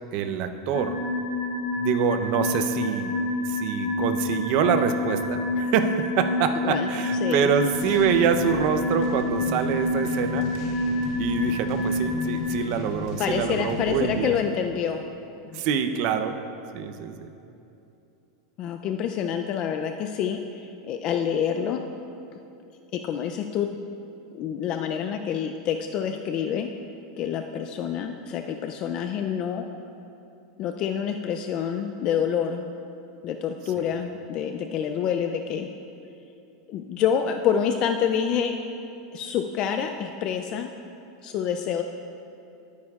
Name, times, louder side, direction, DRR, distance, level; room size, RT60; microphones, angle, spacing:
voice 1, 0.1-1.0 1.7-3.1 3.5-10.5 11.2-14.4 15.5-16.4 16.7-17.3, right 8 dB, 50° right, 8 dB, 0.7 m, -25 dB
sound 1, 0.7-12.4, left 2 dB, 85° left, 2.7 m, -28 dB
sound 2, 7.7-14.4, left 3 dB, 65° left, 1.2 m, -36 dB
voice 2, 13.2-15.0 15.4-15.6 18.6-21.8 22.9-23.8 24.3-26.7 27.2-29.6 30.6-32.6 33.2-35.7 36.7-38.5 39.1-40.7 41.2-41.8, left 8 dB, 35° left, 5 dB, 0.4 m, -27 dB
18.0 x 9.6 x 2.4 m, 2.8 s
supercardioid pair, 150°, 2 cm